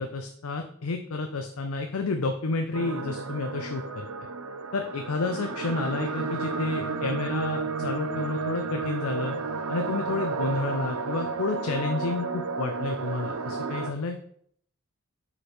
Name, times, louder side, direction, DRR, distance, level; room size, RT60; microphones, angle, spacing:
voice 1, 0.0-4.1 4.7-9.3 9.7-14.2, left 3 dB, 80° left, 5 dB, 0.6 m, -30 dB
sound 1, 2.7-13.9, right 4 dB, 80° right, 0.5 m, -32 dB
4.8 x 4.4 x 4.9 m, 0.63 s
head